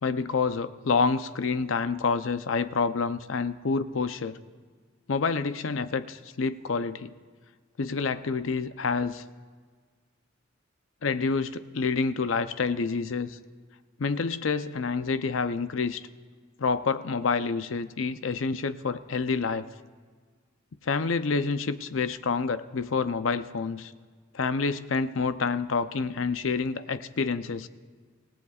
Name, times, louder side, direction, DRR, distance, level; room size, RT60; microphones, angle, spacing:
voice 1, 0.0-4.4 5.1-7.1 7.8-9.2 11.0-13.4 14.0-16.0 16.6-19.7 20.8-23.9 24.3-27.7, left 4 dB, 85° left, 12 dB, 0.6 m, -28 dB
27.0 x 17.0 x 2.4 m, 1.5 s
head